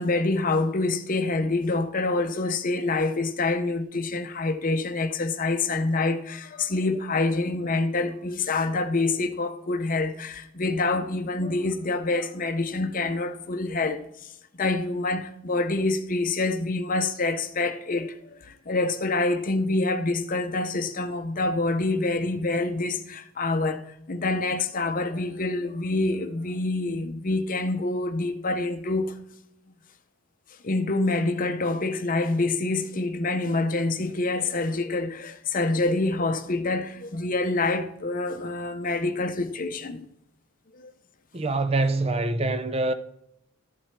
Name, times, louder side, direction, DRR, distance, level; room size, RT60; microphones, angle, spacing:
voice 1, 0.0-23.8 24.1-29.1 29.7-29.8 30.6-40.1 40.8-40.9, left 2 dB, 40° left, 0.7 m, -26 dB
voice 2, 41.3-42.9, right 2 dB, 25° right, 0.5 m, -25 dB
13.5 x 7.7 x 3.2 m
head